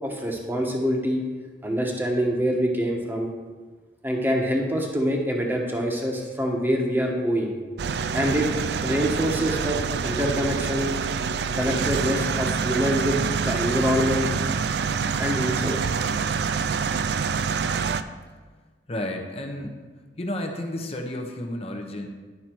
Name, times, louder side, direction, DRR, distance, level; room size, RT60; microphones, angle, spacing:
voice 1, 0.0-1.2 1.6-3.3 4.0-7.5 8.1-8.5 8.8-11.0 11.5-14.3 15.2-15.8, equal, 10° right, 0 dB, 1.2 m, -25 dB
sound 1, 7.8-18.0, right 5 dB, 70° right, 0.4 m, -26 dB
voice 2, 18.9-19.8 20.2-22.1, left 1 dB, 35° left, 3 dB, 0.9 m, -31 dB
11.0 x 5.7 x 4.5 m, 1.4 s
head